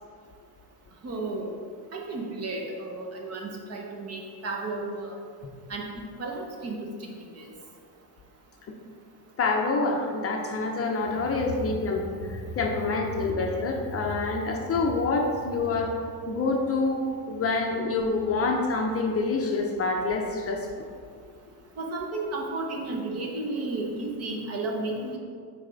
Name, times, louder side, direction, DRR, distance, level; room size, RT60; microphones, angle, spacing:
voice 1, 1.0-1.5 1.9-5.1 5.7-7.5 11.1-11.2 11.7-11.8 12.2-12.3 21.8-25.2, right 2 dB, 35° right, 0 dB, 1.0 m, -33 dB
voice 2, 9.4-16.0 16.3-17.0 17.3-20.9, left 3 dB, 35° left, 1 dB, 0.6 m, -27 dB
8.0 x 4.8 x 3.9 m, 2.1 s
cardioid pair, 170°, 41 cm